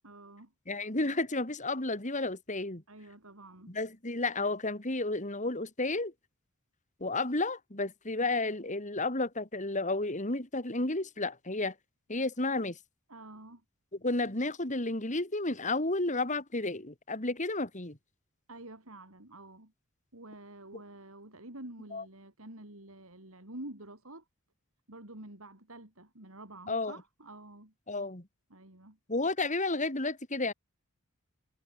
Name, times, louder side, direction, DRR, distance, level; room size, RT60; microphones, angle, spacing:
voice 1, 0.0-0.5 2.9-3.8 13.1-13.6 18.5-19.7 20.1-24.3 24.9-27.7 28.5-29.0, right 1 dB, 75° right, 5.4 m, -48 dB
voice 2, 0.7-2.8 3.7-6.1 7.0-11.7 12.1-12.8 14.0-18.0 21.9-22.0 26.7-27.0 27.9-28.3 29.1-30.5, left 2 dB, 35° left, 3.1 m, -32 dB
head